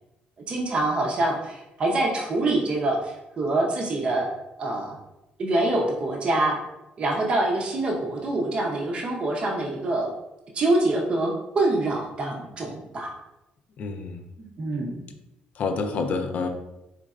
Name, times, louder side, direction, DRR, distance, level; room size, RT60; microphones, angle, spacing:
voice 1, 0.5-4.3 4.6-5.0 5.4-6.6 7.0-10.1 10.5-13.1 14.4-15.0, right 2 dB, 35° right, -1 dB, 0.6 m, -25 dB
voice 2, 13.8-14.2 15.6-16.5, left 4 dB, 55° left, 6 dB, 0.4 m, -28 dB
4.1 x 3.2 x 2.4 m, 0.91 s
cardioid pair, 150°, 3 cm